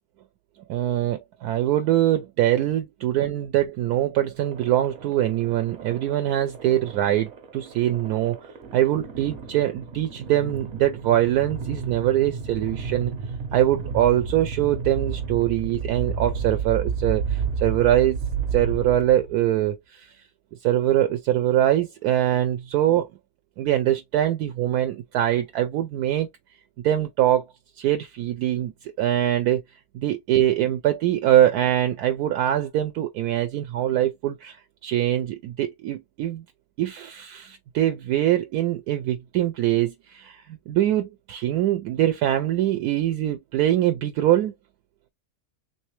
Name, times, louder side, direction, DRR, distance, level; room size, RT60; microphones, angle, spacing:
voice 1, 0.7-8.4 8.7-13.1 13.5-18.2 18.5-20.1 20.6-23.1 23.6-26.3 26.8-27.4 27.8-29.6 29.9-34.6 34.8-36.4 36.8-44.5, right 12 dB, 75° right, 1.1 m, -23 dB
sound 1, 4.4-19.5, right 5 dB, 55° right, 1.0 m, -32 dB
3.2 x 3.0 x 3.1 m
omnidirectional pair, 1.7 m